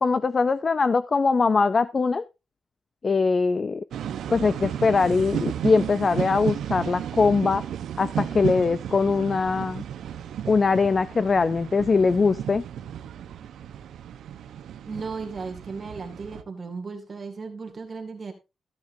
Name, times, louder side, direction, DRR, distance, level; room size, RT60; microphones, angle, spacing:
voice 1, 0.0-2.2 3.0-3.8 4.3-7.6 8.0-9.8 10.5-12.6, left 4 dB, 35° left, 15 dB, 0.4 m, -22 dB
sound 1, 3.9-16.4, right 9 dB, 85° right, 0.8 m, -33 dB
voice 2, 14.9-18.3, right 4 dB, 40° right, 4 dB, 2.1 m, -35 dB
14.5 x 9.4 x 2.6 m, 0.26 s
cardioid pair, 115°, 0 cm